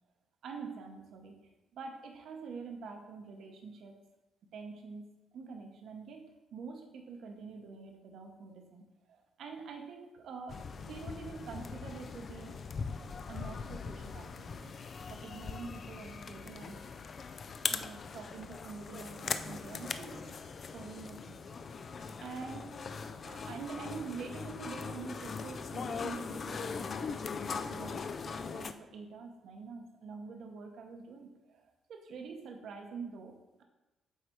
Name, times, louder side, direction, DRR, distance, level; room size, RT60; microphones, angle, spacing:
voice 1, 0.4-4.0 4.5-12.6 13.3-14.7 15.1-17.1 17.7-21.4 22.2-22.7 23.2-27.1 27.7-33.6, right 4 dB, 70° right, 4 dB, 0.9 m, -46 dB
sound 1, 10.5-28.7, left 5 dB, 45° left, 0.4 m, -40 dB
8.3 x 3.3 x 4.4 m, 1.0 s
cardioid pair, 90°, 0 cm